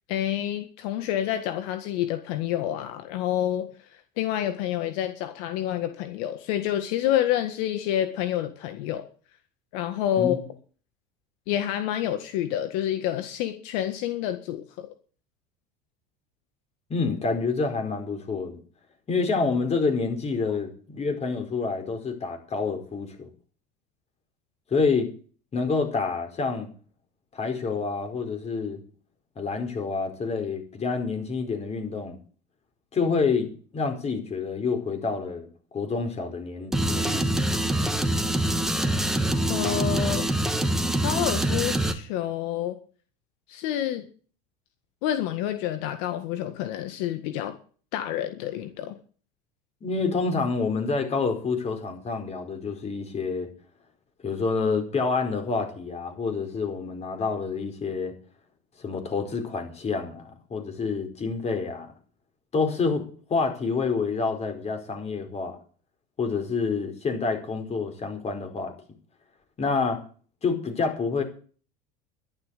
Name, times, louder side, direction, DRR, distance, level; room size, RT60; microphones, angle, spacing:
voice 1, 0.1-9.0 9.7-10.4 11.5-14.9 39.5-40.3 41.0-42.8 43.5-44.1 45.0-47.5 47.9-48.9, left 11 dB, 70° left, 8 dB, 1.8 m, -28 dB
voice 2, 16.9-18.6 19.1-23.3 24.7-25.1 25.5-26.7 27.3-28.8 29.4-32.2 32.9-35.5 35.7-37.3 49.8-53.5 54.2-58.1 58.8-61.9 62.5-65.6 66.2-68.7 69.6-70.0 70.4-71.2, left 4 dB, 30° left, 5 dB, 4.9 m, -28 dB
sound 1, 36.7-42.0, right 1 dB, ahead, 2.1 m, -25 dB
12.0 x 11.5 x 6.7 m, 0.41 s
supercardioid pair, 95°, 21 cm